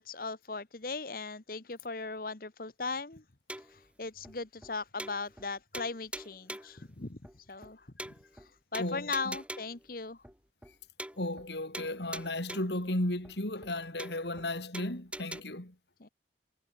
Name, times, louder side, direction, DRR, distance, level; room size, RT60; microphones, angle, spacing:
voice 1, 0.0-3.2 3.6-7.8 8.3-10.2 16.0-16.1, left 4 dB, 50° left, 1.3 m, -38 dB
sound 1, 3.5-3.8 4.2-4.3 4.6-4.7 5.0-5.5 5.7-6.8 7.2-7.3 7.6-7.7 8.0-8.5 8.7-9.8 10.2-10.3 10.6-10.7 11.0-11.5 11.7-12.8 13.2-13.3 13.6-13.7 14.0-14.5 14.7-15.4, right 1 dB, 5° right, 3.2 m, -43 dB
voice 2, 8.8-9.3 11.2-15.7, left 1 dB, 70° left, 3.4 m, -35 dB
head